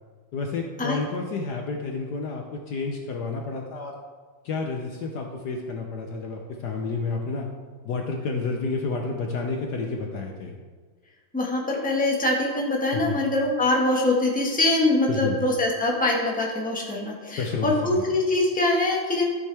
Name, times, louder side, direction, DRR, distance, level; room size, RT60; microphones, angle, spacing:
voice 1, 0.3-4.0 4.4-7.5 7.8-10.6 12.9-13.2 15.1-15.4 17.4-18.1, left 4 dB, 65° left, 2 dB, 1.3 m, -30 dB
voice 2, 11.3-19.2, left 2 dB, 5° left, -3 dB, 1.2 m, -23 dB
13.5 x 6.5 x 3.4 m, 1.5 s
omnidirectional pair, 2.2 m